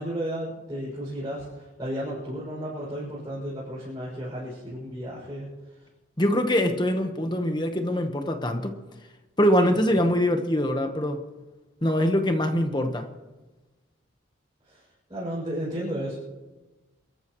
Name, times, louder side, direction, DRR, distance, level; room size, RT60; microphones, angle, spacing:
voice 1, 0.0-5.9 9.9-10.0 14.6-16.2, equal, 20° right, -8 dB, 6.4 m, -34 dB
voice 2, 6.2-8.8 9.4-11.2 11.8-13.1, equal, 20° left, 5 dB, 1.2 m, -23 dB
29.0 x 14.0 x 3.1 m, 1.2 s
head